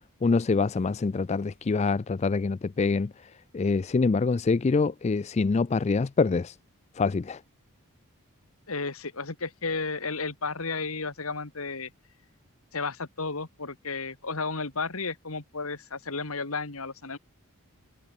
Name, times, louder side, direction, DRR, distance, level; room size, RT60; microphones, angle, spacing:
voice 1, 0.2-6.6 7.0-7.4, left 4 dB, 30° left, 0.3 m, -25 dB
voice 2, 8.7-11.9 12.7-17.2, left 4 dB, 70° left, 2.2 m, -33 dB
head